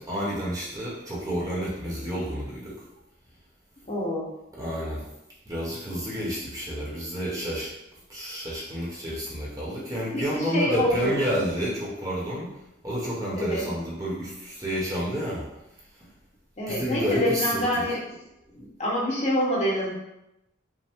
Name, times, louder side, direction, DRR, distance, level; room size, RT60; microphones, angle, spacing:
voice 1, 0.0-2.8 4.5-5.1 5.5-7.7 8.1-12.5 12.8-15.4 16.7-17.8, equal, 20° right, -6 dB, 0.9 m, -30 dB
voice 2, 3.9-4.3 10.1-11.2 13.4-13.6 16.6-18.0 18.6-19.9, left 1 dB, 35° left, -5 dB, 1.1 m, -26 dB
5.4 x 2.1 x 3.5 m, 0.89 s
head